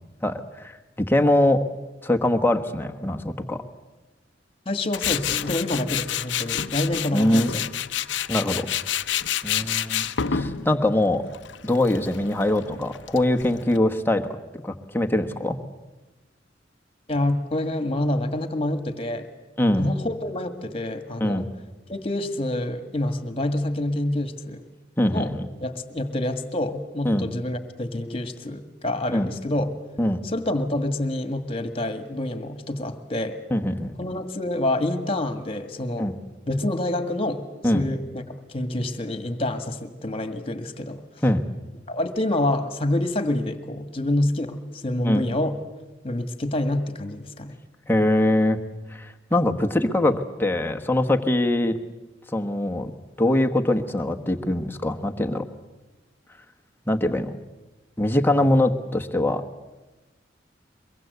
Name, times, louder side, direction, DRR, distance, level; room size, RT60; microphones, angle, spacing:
voice 1, 0.2-1.6 2.0-3.6 7.1-7.5 8.3-8.7 9.4-11.2 11.6-14.2 14.5-15.6 19.6-19.9 21.2-21.5 25.0-25.5 27.0-27.3 29.1-29.3 30.0-30.2 33.5-34.0 36.0-36.2 37.6-37.8 41.2-41.4 45.0-45.3 47.9-48.6 48.9-51.8 52.3-52.9 53.2-55.4 56.9-57.4 58.0-59.4, left 1 dB, 10° left, 5 dB, 1.3 m, -23 dB
voice 2, 4.7-7.6 17.1-19.3 19.8-21.4 21.9-24.6 25.1-25.3 25.6-29.8 30.2-33.4 34.0-36.1 36.5-37.5 37.7-41.0 41.9-45.6 46.0-47.6, left 1 dB, 30° left, 10 dB, 1.8 m, -27 dB
Tools, 4.9-13.8, left 9 dB, 70° left, 0.7 m, -29 dB
23.0 x 22.5 x 8.2 m, 1.1 s
head